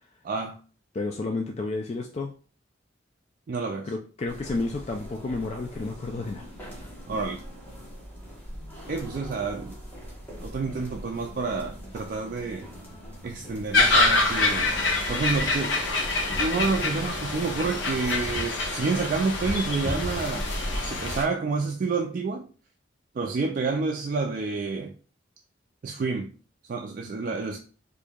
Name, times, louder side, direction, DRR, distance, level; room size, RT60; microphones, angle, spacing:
voice 1, 0.2-0.6 3.5-3.9 7.1-7.4 8.9-9.7 10.4-12.7 13.2-14.7 15.1-15.8 16.4-20.5 20.7-22.5 23.1-24.9 25.8-26.3 26.7-27.6, right 4 dB, 45° right, 0.3 m, -29 dB
voice 2, 0.9-2.3 3.8-6.7, left 3 dB, 35° left, 0.3 m, -31 dB
sound 1, 4.3-18.4, equal, 10° left, 1.2 m, -42 dB
sound 2, 13.7-21.2, left 2 dB, 80° left, 0.8 m, -25 dB
4.5 x 2.6 x 2.3 m
head